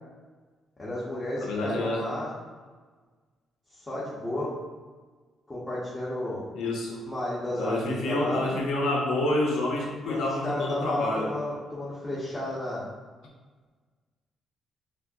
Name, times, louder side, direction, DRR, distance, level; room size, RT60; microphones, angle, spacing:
voice 1, 0.8-2.3 3.7-4.5 5.5-6.5 7.0-8.5 10.1-12.9, left 1 dB, 20° left, -9 dB, 1.1 m, -32 dB
voice 2, 1.4-2.1 6.5-7.0 7.6-11.3, left 1 dB, 80° left, -1 dB, 0.9 m, -28 dB
5.4 x 2.2 x 2.7 m, 1.4 s
cardioid pair, 90°, 0 cm